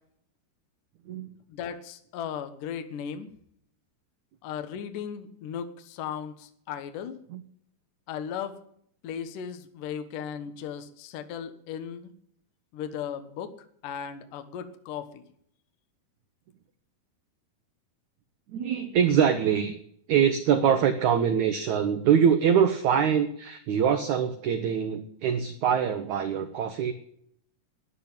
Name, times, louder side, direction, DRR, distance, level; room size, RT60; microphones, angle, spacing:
voice 1, 1.5-3.3 4.4-7.2 8.1-8.6 9.0-12.1 12.7-13.5 13.8-15.2, left 8 dB, 65° left, 9 dB, 2.6 m, -36 dB
voice 2, 18.5-19.7 20.1-26.9, right 8 dB, 70° right, 9 dB, 1.9 m, -24 dB
13.0 x 10.0 x 8.8 m, 0.68 s
omnidirectional pair, 4.4 m